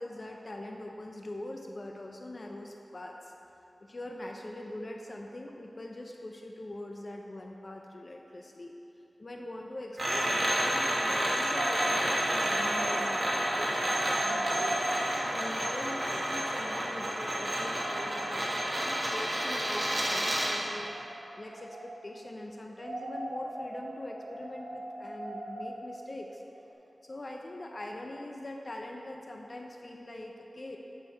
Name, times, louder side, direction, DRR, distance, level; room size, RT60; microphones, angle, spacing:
voice 1, 0.0-3.3 3.8-8.7 9.2-14.8 15.3-20.9 21.4-26.4 27.0-30.8, left 1 dB, 45° left, 1 dB, 0.5 m, -42 dB
sound 1, 10.0-20.6, equal, 40° right, 1.5 m, -30 dB
sound 2, 11.5-16.9 17.2-17.3 17.6-19.9 20.7-22.4 22.7-26.7, right 1 dB, 90° right, 1.1 m, -40 dB
10.5 x 4.5 x 4.4 m, 2.9 s
wide cardioid pair, 90°, 0 cm